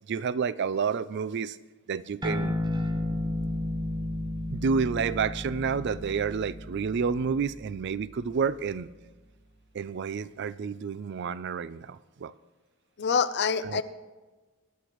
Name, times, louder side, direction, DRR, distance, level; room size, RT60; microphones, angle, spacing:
voice 1, 0.1-1.6 1.9-2.6 4.5-8.9 9.7-12.3 13.6-13.8, right 6 dB, 55° right, 17 dB, 0.4 m, -29 dB
sound 1, 2.2-9.0, left 1 dB, 20° right, 1.0 m, -33 dB
voice 2, 13.0-13.8, left 6 dB, 55° left, 12 dB, 0.6 m, -26 dB
22.5 x 10.5 x 3.1 m, 1.3 s
head